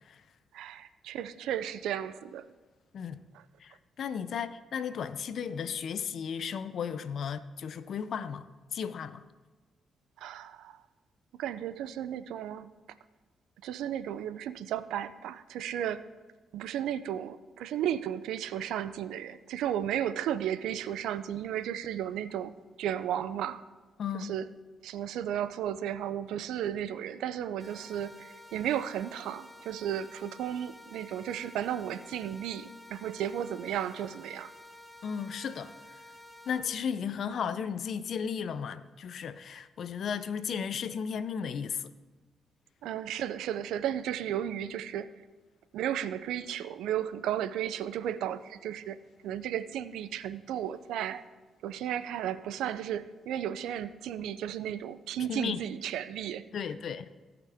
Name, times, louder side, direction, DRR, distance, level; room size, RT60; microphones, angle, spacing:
voice 1, 0.5-2.4 3.3-3.4 10.2-10.8 11.4-12.7 13.6-16.1 16.5-23.6 24.1-24.5 24.8-34.5 42.8-45.1 45.7-49.0 49.2-51.2 51.6-56.4, right 10 dB, 85° right, 0.5 m, -34 dB
voice 2, 3.6-8.5 8.7-9.2 24.0-24.3 35.0-35.7 36.5-41.8 55.3-55.6 56.5-57.1, left 7 dB, 65° left, 0.6 m, -34 dB
sound 1, 27.6-36.6, left 1 dB, 5° left, 1.2 m, -51 dB
17.0 x 5.9 x 3.5 m
cardioid pair, 65°, 0 cm